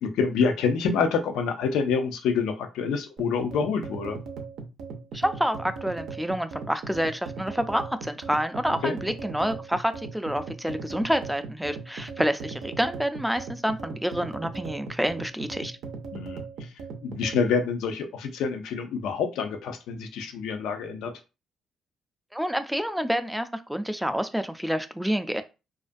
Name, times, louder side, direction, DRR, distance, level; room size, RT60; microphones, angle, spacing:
voice 1, 0.0-4.2 8.8-9.0 16.1-16.4 17.0-21.1, left 5 dB, 85° left, 6 dB, 0.4 m, -27 dB
sound 1, 3.2-17.5, right 4 dB, 80° right, 0.5 m, -38 dB
voice 2, 5.1-15.8 22.3-25.4, equal, ahead, 9 dB, 0.3 m, -28 dB
2.3 x 2.2 x 2.5 m, 0.29 s
cardioid pair, 90°, 0 cm